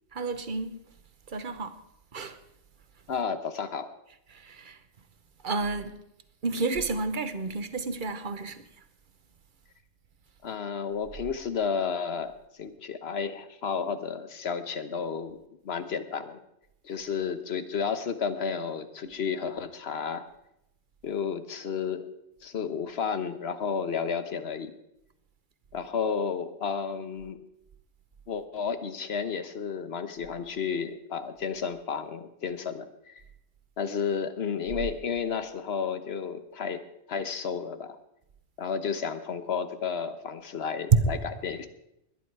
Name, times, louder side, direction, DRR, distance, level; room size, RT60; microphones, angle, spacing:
voice 1, 0.1-0.7 1.3-1.7 2.1-2.3 4.4-4.8 5.4-5.9 6.4-8.6 40.9-41.1, right 4 dB, 45° right, 1.1 m, -28 dB
voice 2, 3.1-3.9 10.4-12.3 12.6-16.4 16.8-20.2 21.0-22.1 22.4-24.8 25.7-27.4 28.3-33.1 33.8-38.0 38.6-41.7, left 6 dB, 60° left, 1.3 m, -32 dB
21.0 x 10.5 x 4.7 m
omnidirectional pair, 1.2 m